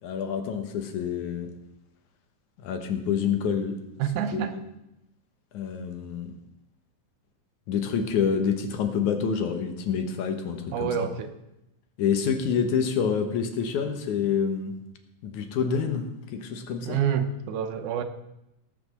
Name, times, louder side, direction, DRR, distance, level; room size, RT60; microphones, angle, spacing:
voice 1, 0.0-1.5 2.6-3.8 4.3-4.6 5.5-6.4 7.7-11.1 12.0-14.8 15.2-17.0, left 7 dB, 80° left, 6 dB, 2.6 m, -27 dB
voice 2, 4.0-4.5 10.7-11.3 16.9-18.0, right 8 dB, 90° right, 8 dB, 2.4 m, -27 dB
17.0 x 6.0 x 6.6 m, 0.88 s
omnidirectional pair, 3.5 m